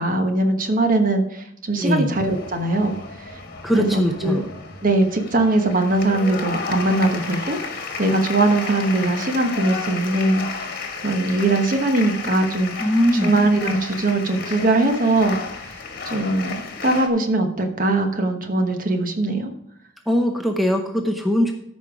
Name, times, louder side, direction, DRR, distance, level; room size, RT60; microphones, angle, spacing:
voice 1, 0.0-3.4 3.7-4.4 4.8-7.6 8.0-12.7 13.2-15.4 16.0-16.5 16.8-19.5, right 2 dB, 40° right, 5 dB, 1.1 m, -21 dB
voice 2, 1.8-2.1 3.6-4.4 12.8-13.3 20.1-21.5, equal, ahead, 3 dB, 0.7 m, -20 dB
sound 1, 2.1-17.1, left 4 dB, 45° left, 1.3 m, -32 dB
14.0 x 5.4 x 4.9 m, 0.78 s
head